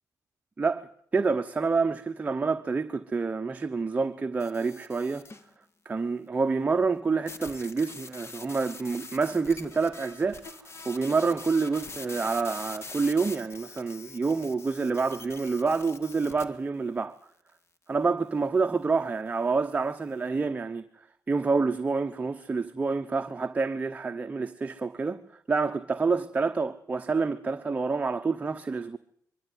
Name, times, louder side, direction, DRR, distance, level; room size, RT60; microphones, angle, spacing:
voice 1, 0.6-5.3 5.8-10.6 10.8-17.2 17.9-29.0, right 4 dB, 25° right, 1.0 m, -28 dB
sound 1, 4.4-5.5 7.3-16.4, left 3 dB, 40° left, 1.9 m, -44 dB
23.0 x 13.0 x 9.4 m
cardioid pair, 90°, 7 cm